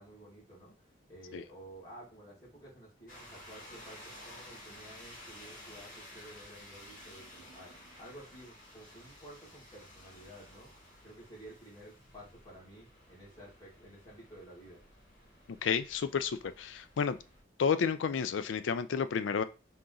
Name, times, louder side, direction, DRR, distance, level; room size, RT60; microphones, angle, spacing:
voice 1, 0.0-10.7 11.0-14.8, right 1 dB, 20° left, -7 dB, 2.1 m, -52 dB
sound 1, 3.1-17.4, left 1 dB, 45° left, 1.7 m, -53 dB
voice 2, 15.6-17.2 17.6-19.4, left 6 dB, 80° left, 12 dB, 0.4 m, -31 dB
3.8 x 2.9 x 3.8 m, 0.31 s
head